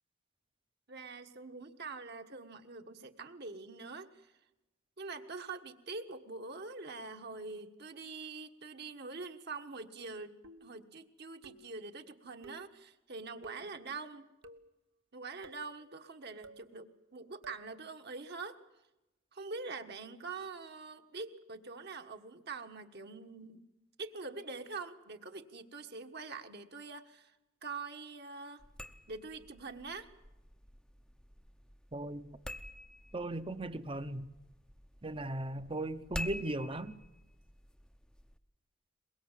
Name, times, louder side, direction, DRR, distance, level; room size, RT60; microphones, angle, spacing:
voice 1, 0.9-4.3 5.0-10.3 10.6-14.3 15.1-18.6 19.3-23.6 24.0-27.3 27.6-28.6 29.1-30.1, right 4 dB, 50° right, 1.5 m, -44 dB
sound 1, 10.4-10.8 11.4-11.8 12.4-12.8 13.4-13.7 14.4-14.8 15.4-15.7 16.4-16.7 17.4-17.7, right 3 dB, 70° right, 1.3 m, -54 dB
sound 2, 28.6-38.4, left 1 dB, 5° left, 0.8 m, -48 dB
voice 2, 31.9-32.3 33.1-34.3 35.0-37.0, right 1 dB, 25° right, 0.9 m, -37 dB
23.0 x 22.0 x 7.4 m
head